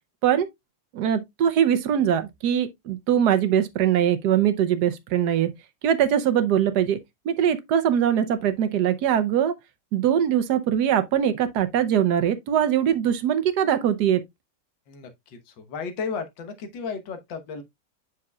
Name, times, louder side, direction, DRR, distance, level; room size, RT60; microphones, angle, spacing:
voice 1, 0.9-5.5 5.8-7.0 7.2-9.5 9.9-14.2, right 9 dB, 70° right, 1.2 m, -22 dB
voice 2, 14.9-17.6, left 5 dB, 90° left, 1.8 m, -34 dB
7.5 x 6.0 x 2.3 m
omnidirectional pair, 1.9 m